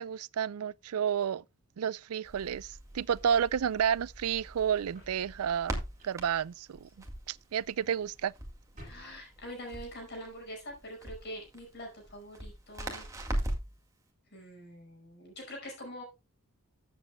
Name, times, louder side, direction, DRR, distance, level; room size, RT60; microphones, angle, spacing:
voice 1, 0.0-1.4 1.8-6.9 7.3-8.3, right 8 dB, 85° right, 0.4 m, -31 dB
Crackle, 2.2-13.8, right 1 dB, 15° right, 2.0 m, -41 dB
sound 1, 2.7-10.2, equal, 35° right, 7.2 m, -59 dB
voice 2, 8.8-13.1 14.3-16.0, equal, 50° left, 5.2 m, -44 dB
14.5 x 7.9 x 2.2 m
head